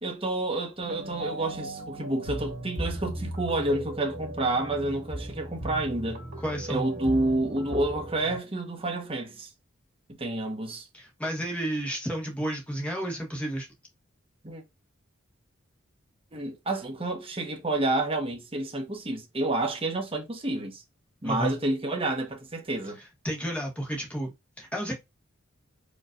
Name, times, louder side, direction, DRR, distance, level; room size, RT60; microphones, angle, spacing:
voice 1, 0.0-6.2 6.7-9.5 10.2-10.9 14.4-14.6 16.3-20.8 21.2-23.0, right 2 dB, 25° right, 1.1 m, -29 dB
sound 1, 0.8-8.4, right 1 dB, 55° right, 2.6 m, -37 dB
voice 2, 6.4-6.9 10.9-13.7 21.2-21.6 23.2-25.0, right 1 dB, 5° left, 1.6 m, -32 dB
5.2 x 3.1 x 2.5 m
head